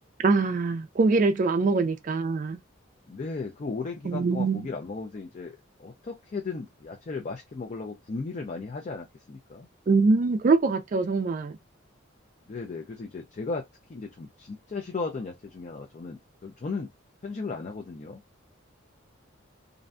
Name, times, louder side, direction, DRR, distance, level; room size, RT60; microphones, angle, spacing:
voice 1, 0.2-2.6 4.1-4.7 9.9-11.5, right 3 dB, 40° right, 0.3 m, -23 dB
voice 2, 3.1-9.7 12.5-16.9 17.2-18.2, left 4 dB, 35° left, 0.4 m, -36 dB
2.5 x 2.1 x 2.4 m
head